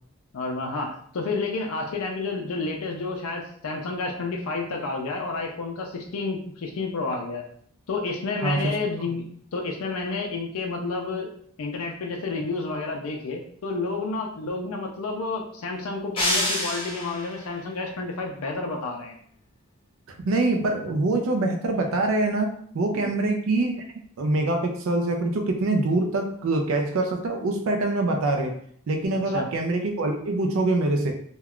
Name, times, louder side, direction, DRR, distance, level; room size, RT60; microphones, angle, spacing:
voice 1, 0.3-7.4 7.9-9.2 9.5-11.3 11.6-19.2 22.9-23.1 29.3-29.5, left 3 dB, 70° left, 2 dB, 0.4 m, -30 dB
voice 2, 8.4-8.8 20.2-23.9 24.2-28.5 28.9-31.2, right 2 dB, 65° right, 3 dB, 0.4 m, -24 dB
sound 1, 16.2-17.4, left 1 dB, 25° left, 0.5 m, -26 dB
2.2 x 2.2 x 3.5 m, 0.63 s
head